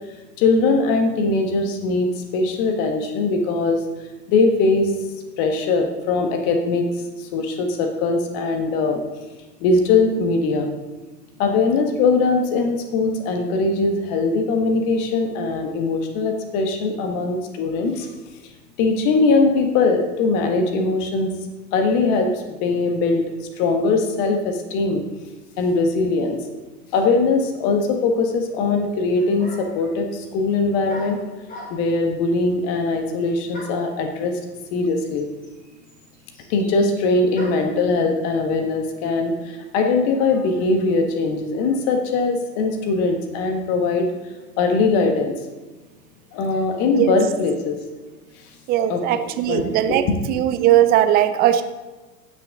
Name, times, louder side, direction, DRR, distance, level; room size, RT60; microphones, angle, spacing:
voice 1, 0.4-3.8 4.3-4.9 5.4-6.8 7.2-9.0 9.6-10.7 11.4-18.1 18.8-21.3 21.7-25.0 25.6-26.4 26.9-31.2 31.7-34.3 34.7-35.3 36.5-44.1 44.6-45.3 46.3-47.8 48.9-49.2 49.5-50.1, left 3 dB, 40° left, 5 dB, 1.6 m, -21 dB
sound 1, 28.9-29.0 29.4-29.9 30.9-32.0 33.5-33.9 34.9-35.0 35.2-37.8, equal, 15° left, 3.1 m, -39 dB
voice 2, 48.7-51.6, right 11 dB, 20° right, 10 dB, 0.5 m, -19 dB
16.5 x 6.6 x 3.8 m, 1.2 s
figure-of-eight pair, 100°, 50 cm